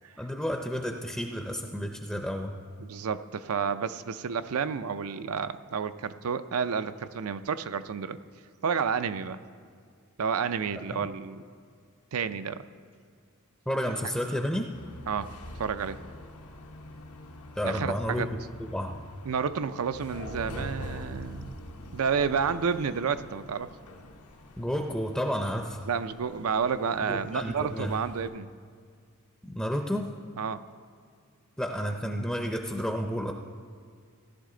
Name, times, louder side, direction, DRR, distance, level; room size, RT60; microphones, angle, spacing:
voice 1, 0.2-2.5 10.9-11.1 13.7-14.7 17.5-18.3 18.6-19.0 24.6-25.8 27.0-28.0 29.4-30.1 31.6-33.3, equal, 5° left, 3 dB, 0.5 m, -31 dB
voice 2, 2.8-8.2 8.6-9.4 10.2-11.4 12.1-12.6 15.1-16.0 17.6-18.3 19.3-21.6 21.9-23.7 25.9-28.5 30.4-30.6, right 6 dB, 75° right, 12 dB, 0.5 m, -30 dB
sound 1, 14.7-28.3, left 1 dB, 90° left, 1.0 m, -44 dB
16.5 x 11.0 x 3.8 m, 2.1 s
head